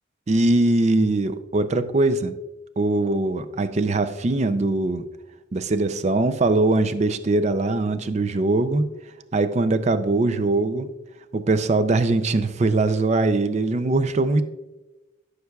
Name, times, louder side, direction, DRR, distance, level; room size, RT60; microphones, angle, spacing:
voice 1, 0.3-2.3 2.8-5.0 5.5-8.9 9.3-10.9 11.3-14.4, right 2 dB, 35° right, 11 dB, 0.4 m, -21 dB
14.0 x 6.5 x 2.3 m, 1.1 s
head